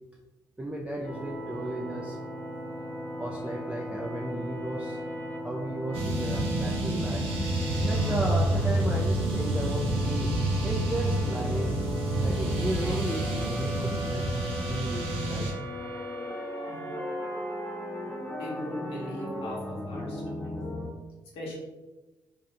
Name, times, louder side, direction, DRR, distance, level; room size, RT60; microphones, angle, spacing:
voice 1, 0.6-2.2 3.2-5.0 5.4-7.3 7.8-10.3 10.6-11.8 12.2-14.3 14.7-15.5, right 1 dB, 10° right, -1 dB, 0.3 m, -34 dB
sound 1, 1.0-20.9, equal, 20° left, 0.8 m, -37 dB
sound 2, 5.9-15.5, right 1 dB, 80° right, 0.6 m, -28 dB
voice 2, 18.4-20.6 21.3-21.6, left 1 dB, 75° left, -4 dB, 0.8 m, -40 dB
2.4 x 2.0 x 2.7 m, 1.1 s
supercardioid pair, 60°, 10 cm